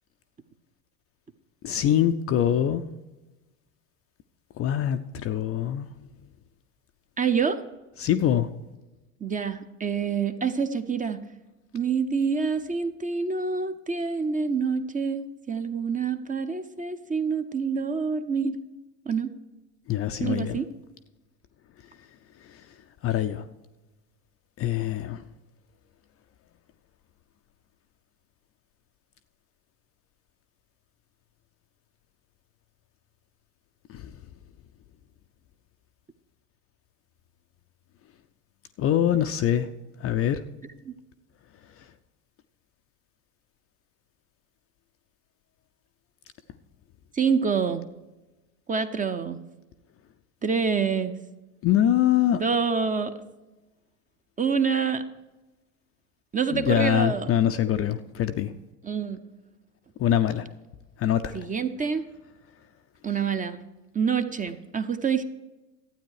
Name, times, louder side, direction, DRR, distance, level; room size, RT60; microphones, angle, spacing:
voice 1, 1.6-2.8 4.6-5.9 8.0-8.5 19.9-20.6 23.0-23.4 24.6-25.2 38.8-39.7 40.0-40.4 51.6-52.4 56.5-58.5 60.0-60.5 61.0-61.3, left 10 dB, 30° left, 8 dB, 0.5 m, -24 dB
voice 2, 7.2-7.6 9.2-11.2 11.7-18.6 19.1-19.3 20.2-20.7 40.8-40.9 47.1-47.8 48.7-49.4 50.4-51.1 52.4-53.1 54.4-55.0 56.3-57.3 58.8-59.2 61.3-62.1 63.0-63.6 63.9-65.2, right 5 dB, 15° right, 9 dB, 0.6 m, -26 dB
12.5 x 8.7 x 4.8 m, 1.1 s
hypercardioid pair, 75°, 46 cm